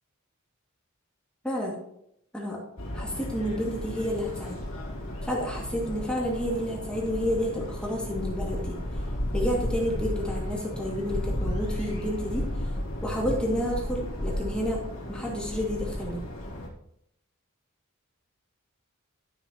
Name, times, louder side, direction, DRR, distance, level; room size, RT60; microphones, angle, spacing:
voice 1, 1.4-1.7 2.3-2.6 2.9-4.6 5.2-8.8 9.3-12.5 13.0-14.8 15.1-16.2, equal, 5° left, -4 dB, 2.3 m, -30 dB
sound 1, 2.8-16.7, left 1 dB, 70° left, 2.7 m, -33 dB
12.5 x 7.1 x 3.0 m, 0.75 s
head